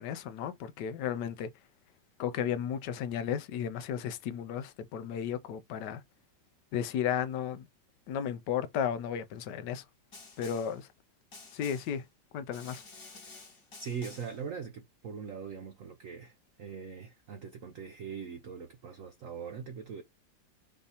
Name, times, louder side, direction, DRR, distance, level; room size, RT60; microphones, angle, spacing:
voice 1, 0.0-1.5 2.2-6.0 6.7-7.7 8.1-9.8 10.4-10.9 11.5-12.0 12.3-12.8, left 8 dB, 70° left, 1.2 m, -34 dB
Snare drum, 10.1-10.8 11.3-12.0 12.5-14.4, left 3 dB, 45° left, 2.0 m, -51 dB
voice 2, 13.8-20.0, right 6 dB, 60° right, 0.9 m, -41 dB
5.4 x 2.8 x 3.4 m
omnidirectional pair, 2.1 m